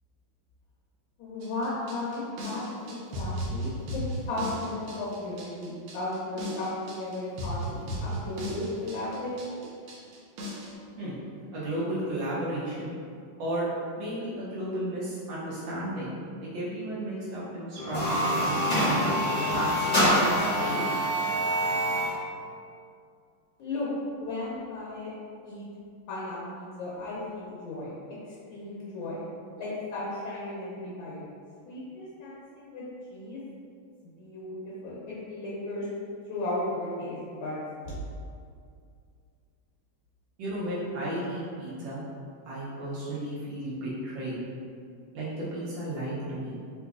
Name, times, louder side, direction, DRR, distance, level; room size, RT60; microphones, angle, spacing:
voice 1, 1.2-2.6 2.9-4.0 4.3-9.7 23.6-23.9 24.2-25.1 25.4-25.7 26.1-29.2 29.6-31.2 31.6-32.8 33.1-33.4 34.2-35.9 36.3-38.0, left 2 dB, 85° left, -7 dB, 1.4 m, -35 dB
sound 1, 1.4-10.7, equal, 90° right, 1.4 m, -36 dB
voice 2, 11.5-12.9 13.4-13.7 14.0-16.2 16.4-20.8 40.4-42.0 42.4-44.4 45.1-46.6, right 1 dB, 70° right, -8 dB, 1.3 m, -33 dB
sound 2, 17.8-22.2, equal, 30° left, 0.8 m, -25 dB
3.8 x 2.5 x 2.3 m, 2.3 s
omnidirectional pair, 2.2 m